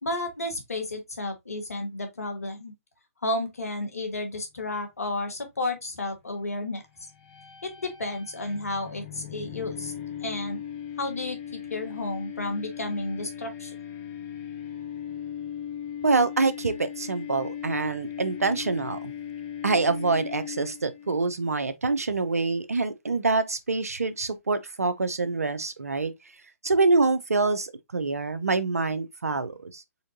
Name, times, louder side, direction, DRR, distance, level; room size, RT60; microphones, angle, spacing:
voice 1, 0.0-2.7 3.2-6.8 7.6-9.9 10.2-10.6 11.0-13.7, left 2 dB, 85° left, 1.5 m, -32 dB
sound 1, 7.1-21.1, left 9 dB, 30° left, 1.2 m, -38 dB
voice 2, 16.0-19.1 19.6-26.1 26.6-29.8, right 3 dB, 85° right, 0.7 m, -26 dB
4.3 x 3.7 x 2.6 m
hypercardioid pair, 140°, 8 cm